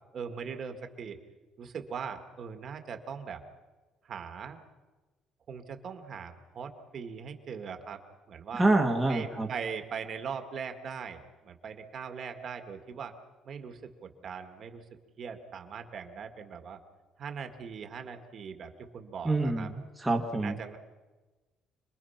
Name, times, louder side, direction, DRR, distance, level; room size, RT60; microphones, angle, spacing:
voice 1, 0.1-1.2 1.6-3.4 4.0-4.6 5.5-8.0 8.3-8.7 9.1-13.1 13.4-14.8 15.2-16.8 17.2-19.7 20.3-20.8, right 6 dB, 40° right, 6 dB, 1.9 m, -40 dB
voice 2, 8.5-9.5 19.2-20.6, right 2 dB, 5° right, 1 dB, 1.5 m, -27 dB
27.0 x 21.5 x 5.8 m, 1.2 s
cardioid pair, 170°, 0 cm